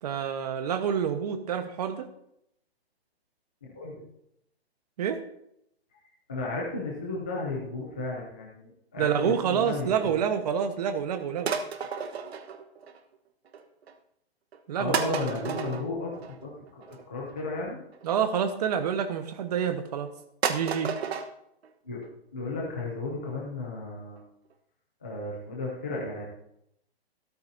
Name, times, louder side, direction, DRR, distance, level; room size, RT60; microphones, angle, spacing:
voice 1, 0.0-2.1 5.0-5.2 9.0-11.6 14.7-15.6 18.0-20.1 20.5-20.9, right 8 dB, 40° right, 8 dB, 1.1 m, -28 dB
voice 2, 3.6-4.0 6.3-10.2 14.8-16.1 16.4-16.8 17.1-17.8 21.8-22.1 22.3-24.2 25.0-26.2, left 3 dB, 10° left, -3 dB, 0.4 m, -34 dB
sound 1, 11.4-13.1 13.4-13.9 14.5-14.6 14.9-18.5 19.2-19.8 20.1-20.2 20.4-21.3 21.6-21.7 22.0-22.1 22.5-22.6 22.8-22.9 23.3-23.4 23.6-23.7 24.2-24.3 24.5-24.6, right 6 dB, 75° right, 1.2 m, -33 dB
14.0 x 13.0 x 2.7 m, 0.78 s
hypercardioid pair, 165°, 32 cm